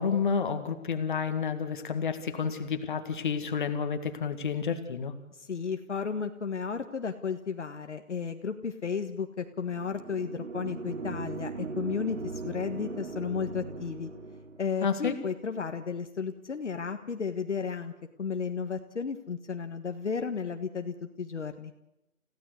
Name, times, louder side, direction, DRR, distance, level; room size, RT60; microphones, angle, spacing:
voice 1, 0.0-5.1 14.8-15.2, left 6 dB, 35° left, 8 dB, 1.9 m, -30 dB
voice 2, 5.3-14.1 14.6-17.9 18.2-21.7, left 6 dB, 55° left, 7 dB, 1.7 m, -33 dB
sound 1, 9.7-14.6, right 4 dB, 55° right, 3.2 m, -39 dB
29.0 x 16.0 x 8.2 m, 0.90 s
figure-of-eight pair, 160°, 44 cm